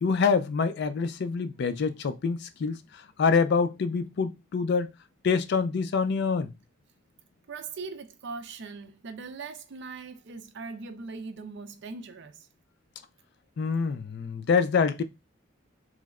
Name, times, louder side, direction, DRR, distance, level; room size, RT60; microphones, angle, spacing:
voice 1, 0.0-4.9 5.2-6.5 13.6-15.0, left 5 dB, 55° left, 0.4 m, -26 dB
voice 2, 7.5-12.5, right 4 dB, 60° right, 0.5 m, -40 dB
3.1 x 2.0 x 3.5 m
head